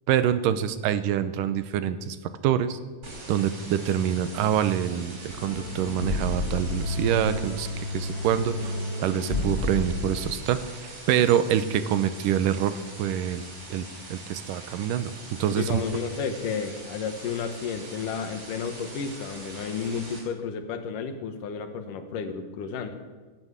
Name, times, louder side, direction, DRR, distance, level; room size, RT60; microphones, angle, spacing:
voice 1, 0.1-2.2 2.4-2.8 3.3-13.4 13.7-13.8 14.1-15.1 15.4-15.8, right 10 dB, 80° right, 12 dB, 2.4 m, -26 dB
sound 1, 3.0-20.2, right 2 dB, 45° right, 5.3 m, -43 dB
sound 2, 5.3-10.3, left 2 dB, 40° left, 2.5 m, -31 dB
voice 2, 15.5-23.0, left 6 dB, 75° left, 8 dB, 2.8 m, -32 dB
17.5 x 9.6 x 8.2 m, 1.3 s
omnidirectional pair, 4.0 m